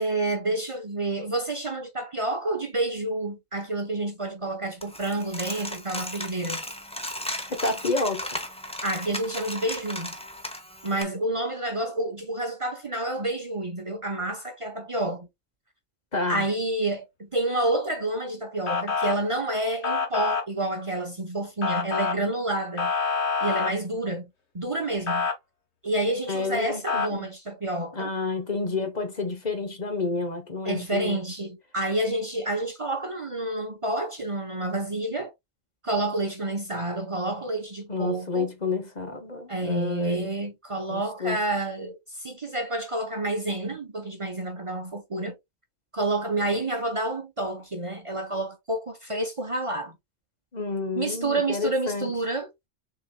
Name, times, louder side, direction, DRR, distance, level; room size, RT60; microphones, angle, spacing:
voice 1, 0.0-6.6 8.8-10.1 10.8-15.3 16.3-22.9 23.4-24.3 24.5-25.3 25.8-28.1 30.6-35.3 35.8-38.5 39.5-45.4 45.9-50.0 51.0-52.5, right 2 dB, 30° right, 0.8 m, -29 dB
Coin (dropping), 4.8-11.0, left 1 dB, 5° left, 0.7 m, -36 dB
voice 2, 7.5-8.4 16.1-16.5 26.3-27.2 27.9-31.2 37.9-40.3 40.9-41.4 50.5-52.2, left 3 dB, 40° left, 1.0 m, -29 dB
Motor vehicle (road) / Siren, 18.7-19.2 19.8-20.4 21.6-22.2 22.8-23.7 25.1-25.3 26.9-27.1, left 5 dB, 75° left, 1.5 m, -26 dB
6.0 x 3.8 x 2.2 m
omnidirectional pair, 1.1 m